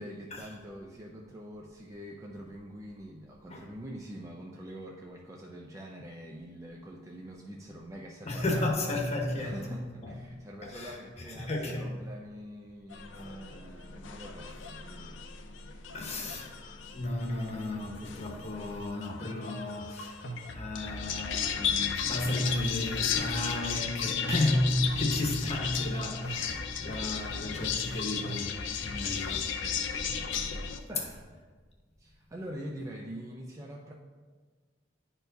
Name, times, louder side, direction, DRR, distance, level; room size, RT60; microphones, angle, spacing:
voice 1, 0.0-8.9 9.4-15.2 15.7-15.9 29.0-29.5 30.5-31.3 32.0-33.9, equal, 15° right, 0.4 m, -45 dB
voice 2, 8.2-9.6 10.0-10.1 10.6-11.0 11.2-11.9 15.9-16.5 16.9-20.2 20.5-29.4, left 1 dB, 35° left, 1.0 m, -33 dB
sound 1, 12.9-30.8, left 7 dB, 75° left, 0.5 m, -35 dB
sound 2, 20.0-29.8, equal, 90° left, 1.0 m, -41 dB
10.5 x 4.4 x 2.6 m
head